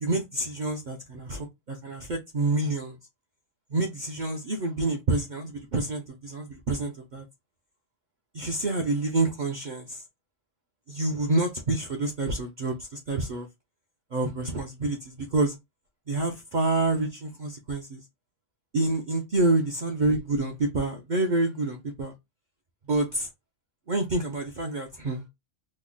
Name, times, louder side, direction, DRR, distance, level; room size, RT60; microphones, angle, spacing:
voice 1, 0.0-3.0 3.7-7.2 8.3-10.0 10.9-13.5 14.1-15.6 16.1-18.0 18.7-22.1 22.9-23.3 23.9-25.3, right 2 dB, 55° right, 0.6 m, -28 dB
3.1 x 2.1 x 3.6 m
omnidirectional pair, 1.2 m